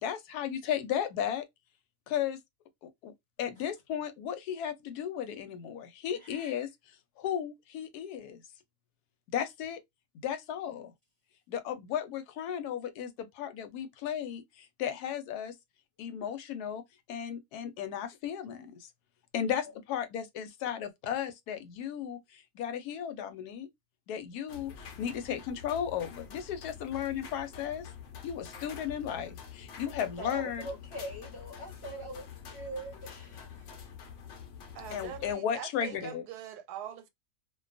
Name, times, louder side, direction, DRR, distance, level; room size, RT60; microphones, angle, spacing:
voice 1, 0.0-1.4 2.1-2.4 3.0-3.1 3.4-6.7 7.2-8.4 9.3-9.8 10.2-10.9 11.5-15.5 16.0-16.8 17.1-18.9 19.3-23.7 24.1-27.9 28.2-30.7 34.9-36.2, left 9 dB, 85° left, 1.1 m, -35 dB
voice 2, 6.2-6.5 30.0-33.5, equal, 30° left, 0.7 m, -42 dB
sound 1, 24.5-35.3, left 7 dB, 65° left, 0.7 m, -47 dB
voice 3, 34.7-37.1, right 9 dB, 85° right, 1.1 m, -43 dB
2.5 x 2.2 x 2.4 m
omnidirectional pair, 1.6 m